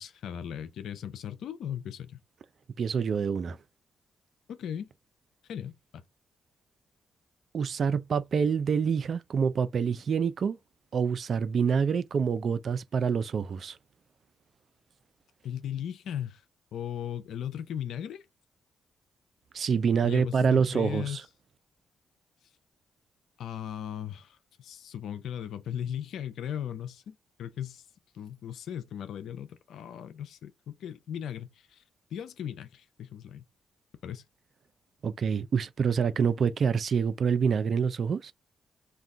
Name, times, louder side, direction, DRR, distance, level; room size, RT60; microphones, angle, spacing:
voice 1, 0.0-2.2 4.5-4.9 5.5-6.0 15.4-16.4 16.7-18.2 20.0-21.2 23.4-27.8 28.1-31.8 32.1-33.4 34.0-34.2, left 9 dB, 75° left, 0.5 m, -37 dB
voice 2, 2.8-3.6 7.5-10.6 10.9-13.8 19.5-21.2 35.0-38.3, right 6 dB, 60° right, 0.3 m, -26 dB
2.4 x 2.2 x 3.7 m
supercardioid pair, 55°, 0 cm